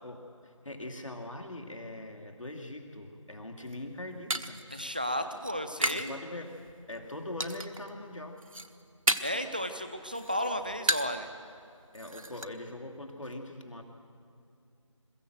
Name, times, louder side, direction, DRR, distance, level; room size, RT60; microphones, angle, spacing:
voice 1, 0.0-4.6 5.9-6.6 6.9-8.4 11.9-13.8, left 1 dB, 70° left, 3 dB, 2.5 m, -42 dB
Falling pottery sharts, 3.6-6.2 6.5-7.0 7.4-7.9 8.2-9.5 9.8-11.3 11.6-11.7 11.9-12.5, right 1 dB, 85° right, 1.2 m, -33 dB
voice 2, 4.7-6.1 9.2-11.3, equal, 15° right, 8 dB, 0.5 m, -33 dB
22.0 x 15.0 x 7.9 m, 2.5 s
figure-of-eight pair, 165°, 17 cm